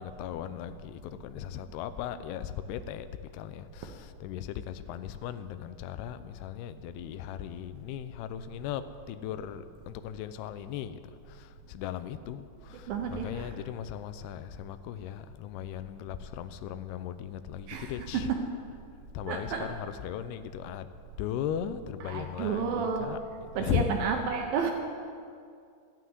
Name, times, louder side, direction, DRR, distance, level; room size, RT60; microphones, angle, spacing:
voice 1, 0.0-3.1 3.3-11.0 11.3-18.3 19.1-20.9 21.2-24.0, left 10 dB, 80° left, 11 dB, 2.6 m, -37 dB
voice 2, 12.9-13.6 17.7-18.4 19.3-19.7 22.0-23.1 23.6-24.7, right 6 dB, 70° right, 3 dB, 2.3 m, -31 dB
14.0 x 9.2 x 9.4 m, 2.3 s
omnidirectional pair, 4.8 m